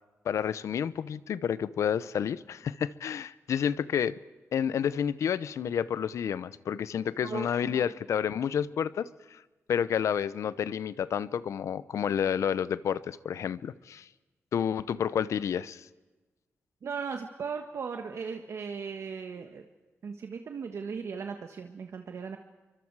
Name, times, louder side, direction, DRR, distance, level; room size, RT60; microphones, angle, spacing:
voice 1, 0.2-4.2 4.5-9.4 9.7-14.1 14.5-15.9, left 8 dB, 90° left, 17 dB, 0.7 m, -30 dB
voice 2, 7.2-7.9 16.8-19.6 20.0-22.4, right 5 dB, 65° right, 5 dB, 1.5 m, -37 dB
28.0 x 24.0 x 4.8 m, 1.2 s
wide cardioid pair, 105°, 5 cm